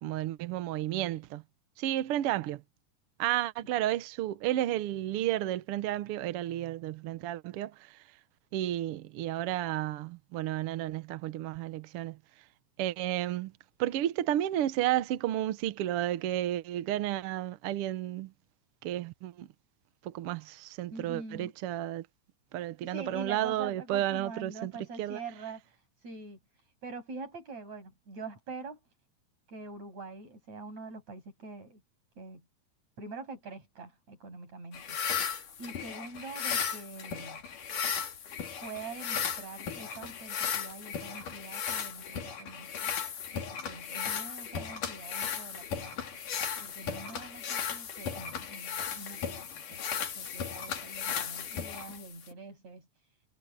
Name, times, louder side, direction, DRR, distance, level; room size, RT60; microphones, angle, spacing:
voice 1, 0.0-1.4 1.8-2.6 3.2-8.0 8.5-12.2 12.8-13.5 13.8-18.3 18.8-19.5 20.0-22.1 22.5-24.7 25.0-25.2, right 13 dB, 75° right, 1.3 m, -32 dB
voice 2, 20.9-21.5 22.8-25.6 26.0-26.4 26.8-28.8 29.5-31.8 32.2-32.4 33.0-35.0 35.6-37.4 38.6-42.7 43.3-46.2 46.6-49.8 50.2-52.9, right 3 dB, 55° right, 8.6 m, -44 dB
sound 1, 34.7-52.3, left 7 dB, 70° left, 4.1 m, -36 dB
omnidirectional pair, 3.8 m